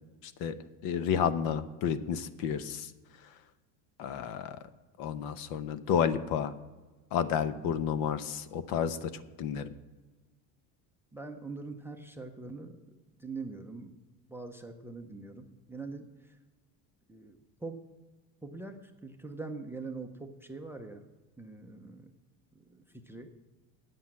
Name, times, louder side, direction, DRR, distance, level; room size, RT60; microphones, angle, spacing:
voice 1, 0.2-0.6 0.8-2.9 4.0-4.6 5.0-6.5 7.1-9.1 9.4-9.7, left 8 dB, 55° left, 13 dB, 0.8 m, -31 dB
voice 2, 7.5-7.9 11.1-14.0 14.3-16.4 17.1-17.8 18.4-21.0 21.4-22.1 22.5-23.3, right 3 dB, 5° right, 7 dB, 0.5 m, -43 dB
9.4 x 8.0 x 7.4 m, 1.2 s
cardioid pair, 150°, 42 cm